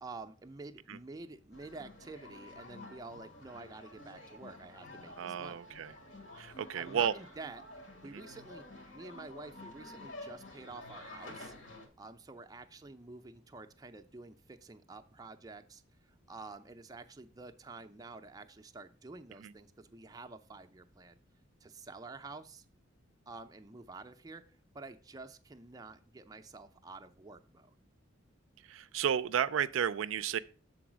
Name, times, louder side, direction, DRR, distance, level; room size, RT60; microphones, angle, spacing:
voice 1, 0.0-5.6 6.7-7.6 8.0-8.6 8.9-11.5 12.0-15.8 16.3-21.2 21.6-22.6 23.3-24.4 24.7-27.8, right 3 dB, 20° right, 0.4 m, -49 dB
sound 1, 1.5-11.9, left 2 dB, 70° left, 1.8 m, -50 dB
voice 2, 5.2-5.9 6.4-7.1 8.0-8.2 19.4-19.5 28.6-30.4, right 8 dB, 85° right, 0.4 m, -33 dB
6.9 x 4.0 x 6.1 m
head